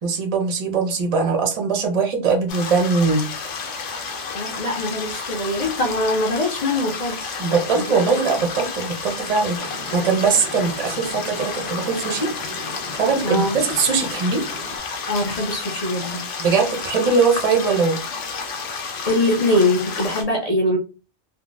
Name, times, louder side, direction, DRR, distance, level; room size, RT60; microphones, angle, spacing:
voice 1, 0.0-3.3 7.4-12.3 12.9-14.4 16.4-18.0, right 4 dB, 40° right, 0.5 m, -21 dB
sound 1, 2.5-20.2, left 5 dB, 75° left, 1.0 m, -31 dB
voice 2, 4.3-8.2 13.2-13.6 15.1-16.3 19.1-20.8, left 1 dB, 45° left, 0.5 m, -23 dB
sound 2, 9.6-14.8, equal, 25° left, 1.1 m, -37 dB
3.6 x 2.0 x 2.5 m
omnidirectional pair, 1.3 m